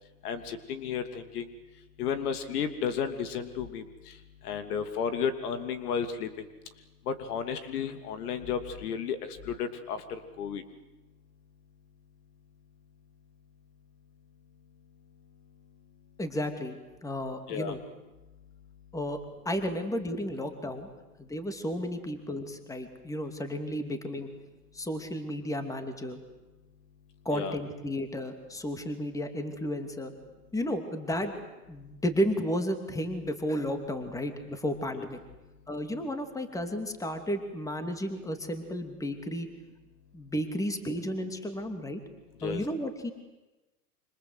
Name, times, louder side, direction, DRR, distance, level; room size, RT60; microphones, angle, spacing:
voice 1, 0.2-1.5 2.0-6.5 7.0-10.6 17.5-17.7 27.3-27.6 34.9-35.1 42.4-42.6, left 7 dB, 65° left, 9 dB, 2.9 m, -33 dB
voice 2, 16.2-17.8 18.9-19.2 19.4-20.9 21.2-24.3 24.7-26.2 27.2-30.1 30.5-31.3 31.7-35.2 35.7-39.5 40.1-42.0 42.4-43.1, equal, 5° left, 7 dB, 2.6 m, -33 dB
27.5 x 26.0 x 8.1 m, 1.1 s
hypercardioid pair, 125°, 49 cm